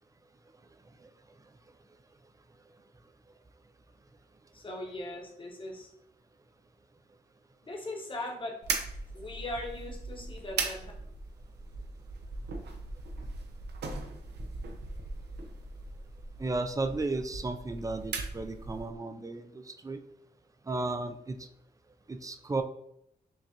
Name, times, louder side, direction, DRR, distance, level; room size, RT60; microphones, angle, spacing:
voice 1, 4.5-5.9 7.6-8.6 9.1-10.9, left 1 dB, 30° left, 1 dB, 0.9 m, -39 dB
sound 1, 8.6-19.0, right 4 dB, 85° right, 0.6 m, -39 dB
voice 2, 16.4-20.0 20.7-21.4 22.1-22.6, right 3 dB, 20° right, 8 dB, 0.4 m, -34 dB
5.9 x 2.4 x 2.8 m, 0.77 s
cardioid pair, 90°, 17 cm